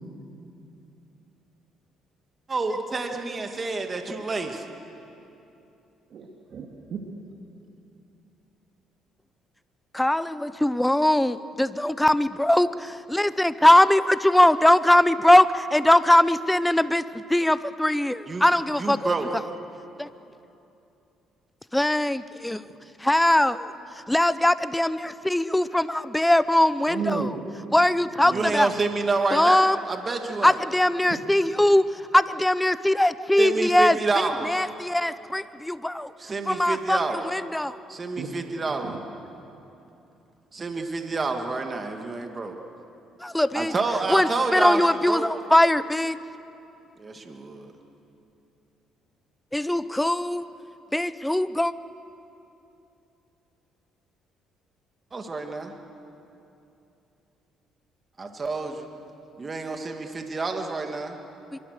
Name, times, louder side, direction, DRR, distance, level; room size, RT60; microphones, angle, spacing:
voice 1, 2.5-4.6 18.3-18.5 18.8-19.3 28.3-30.5 33.4-34.6 36.2-37.2 37.9-38.9 40.5-42.6 43.5-44.8 45.1-45.3 47.0-47.7 55.1-55.7 58.2-58.9 59.4-61.1, right 3 dB, 30° right, 4 dB, 2.1 m, -28 dB
voice 2, 6.1-7.0 22.6-22.7 26.9-27.8 28.2-28.5 31.0-31.2 38.2-38.3 38.6-39.0, right 5 dB, 55° right, 0 dB, 2.3 m, -34 dB
voice 3, 9.9-19.1 20.0-20.1 21.7-22.6 23.0-27.3 27.7-28.7 29.3-29.8 30.4-36.1 36.5-37.8 43.2-43.7 44.1-46.2 49.5-50.5 50.9-51.7 61.5-61.6, left 1 dB, 5° left, 14 dB, 0.7 m, -21 dB
25.5 x 23.5 x 6.7 m, 2.8 s
cardioid pair, 95°, 0 cm